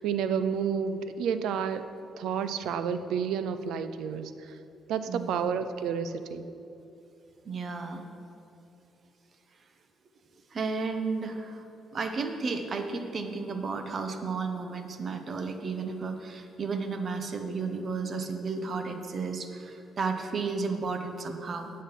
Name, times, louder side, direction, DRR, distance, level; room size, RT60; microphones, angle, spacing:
voice 1, 0.0-1.8 2.2-4.5 4.9-6.5, right 7 dB, 80° right, 11 dB, 0.5 m, -30 dB
voice 2, 5.1-5.5 7.4-8.0 10.5-11.6 11.9-21.7, right 4 dB, 45° right, 6 dB, 0.9 m, -33 dB
8.6 x 8.3 x 5.7 m, 2.9 s
cardioid pair, 110°, 0 cm